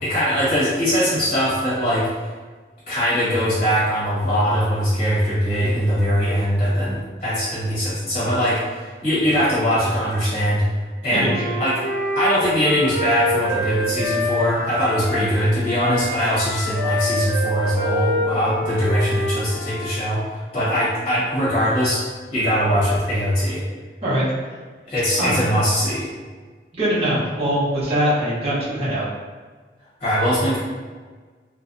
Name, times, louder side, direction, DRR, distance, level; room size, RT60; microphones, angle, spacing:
voice 1, 0.0-2.1 2.9-10.7 11.0-11.3 11.6-11.8 12.1-22.0 22.3-23.6 24.9-26.1 30.0-30.6, equal, 35° left, -10 dB, 1.0 m, -21 dB
voice 2, 11.1-11.5 24.0-24.3 25.2-25.4 26.7-29.1, equal, 35° right, -11 dB, 0.8 m, -22 dB
Wind instrument woodwind instrument, 11.2-15.3 15.6-19.9, left 1 dB, 65° left, 0.6 m, -26 dB
2.5 x 2.1 x 2.5 m, 1.4 s
head